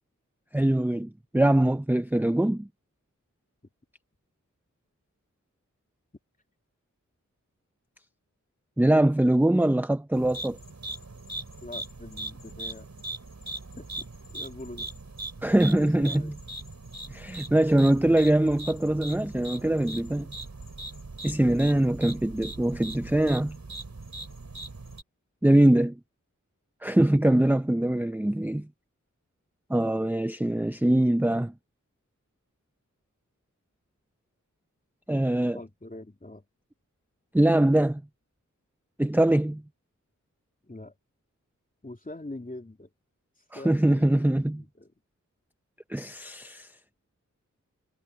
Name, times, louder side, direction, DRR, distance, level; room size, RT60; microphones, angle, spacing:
voice 1, 0.5-2.7 8.8-10.6 15.4-16.4 17.1-20.3 21.2-23.6 25.4-26.0 26.8-28.7 29.7-31.5 35.1-35.6 37.3-38.0 39.0-39.6 43.5-44.6 45.9-46.7, right 1 dB, 5° right, 0.7 m, -23 dB
sound 1, 10.1-25.0, right 2 dB, 60° right, 4.8 m, -40 dB
voice 2, 11.6-12.9 13.8-14.0 14.3-14.9 15.7-16.3 35.5-36.4 40.6-40.9 41.8-42.9 43.5-44.2 44.5-44.9, left 2 dB, 25° left, 3.1 m, -43 dB
wide cardioid pair, 55°, 31 cm